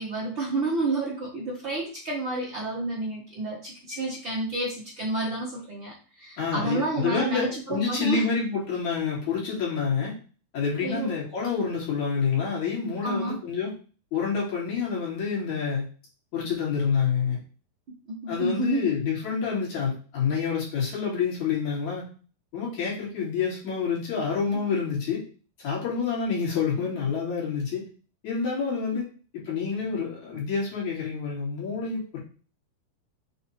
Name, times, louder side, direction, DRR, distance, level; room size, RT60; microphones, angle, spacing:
voice 1, 0.0-8.2 10.8-11.1 13.0-13.4 18.1-18.9 24.5-24.6, right 2 dB, 85° right, -4 dB, 1.0 m, -30 dB
voice 2, 6.4-10.1 10.5-13.7 14.1-15.8 16.3-17.4 18.3-22.0 22.5-25.2 25.6-27.8 28.2-29.1 29.3-32.2, left 6 dB, 45° left, -6 dB, 3.7 m, -28 dB
7.2 x 3.6 x 4.3 m, 0.38 s
omnidirectional pair, 4.9 m